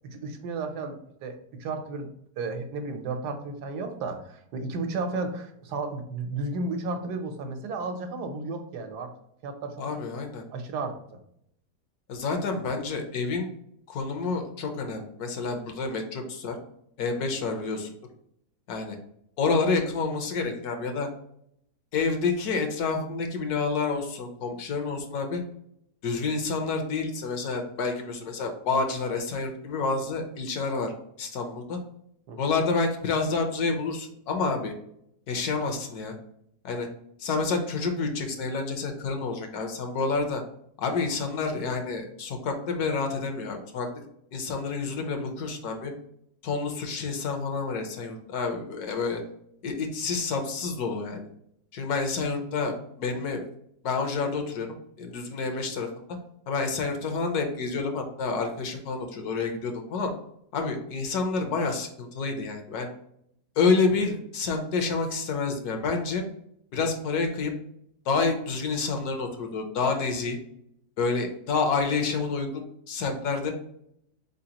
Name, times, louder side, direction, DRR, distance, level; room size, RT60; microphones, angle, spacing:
voice 1, 0.1-2.1 2.4-9.1 9.4-9.7 10.5-11.0 32.3-32.4, right 3 dB, 80° right, 6 dB, 1.3 m, -33 dB
voice 2, 9.8-10.4 12.1-13.5 13.9-16.5 17.0-17.9 18.7-19.0 19.4-21.1 21.9-25.4 26.0-30.9 31.2-31.8 32.4-34.7 35.3-36.1 36.6-36.9 37.2-40.4 40.8-43.9 44.3-45.9 46.4-49.2 49.6-51.2 51.7-53.4 53.8-54.7 55.0-55.9 56.5-60.1 60.5-62.9 63.6-66.2 66.7-67.5 68.1-70.4 71.0-73.5, left 4 dB, 75° left, 4 dB, 1.3 m, -28 dB
4.1 x 3.9 x 2.9 m, 0.73 s
omnidirectional pair, 1.7 m